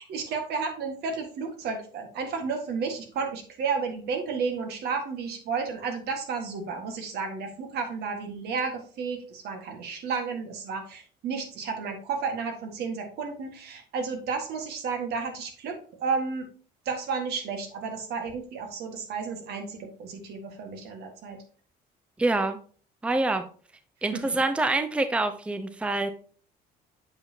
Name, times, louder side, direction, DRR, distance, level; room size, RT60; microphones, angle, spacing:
voice 1, 0.1-16.5 16.8-21.4 24.1-24.4, right 5 dB, 70° right, 5 dB, 1.6 m, -32 dB
voice 2, 22.2-22.6 23.0-23.4 24.0-26.1, right 2 dB, 5° right, 9 dB, 0.5 m, -26 dB
8.0 x 5.5 x 2.8 m, 0.43 s
cardioid pair, 110°, 17 cm